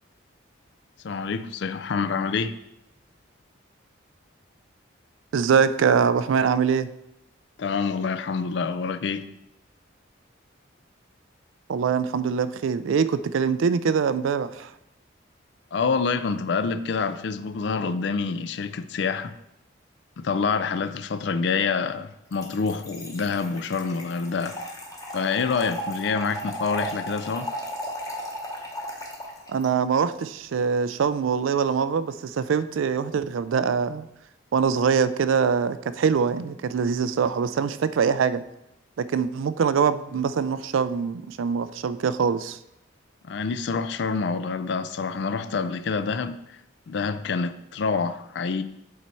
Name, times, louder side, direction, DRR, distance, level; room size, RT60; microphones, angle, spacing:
voice 1, 1.0-2.5 7.6-9.2 15.7-19.3 20.2-24.6 25.1-27.5 43.2-46.4 46.9-48.6, left 5 dB, 60° left, 0.4 m, -27 dB
voice 2, 5.3-6.9 11.7-14.7 29.5-34.1 34.5-38.4 39.0-42.6, right 6 dB, 75° right, 0.4 m, -23 dB
Trickle dribble / Fill (with liquid), 22.3-29.7, equal, 15° left, 0.9 m, -35 dB
7.5 x 4.0 x 4.4 m
head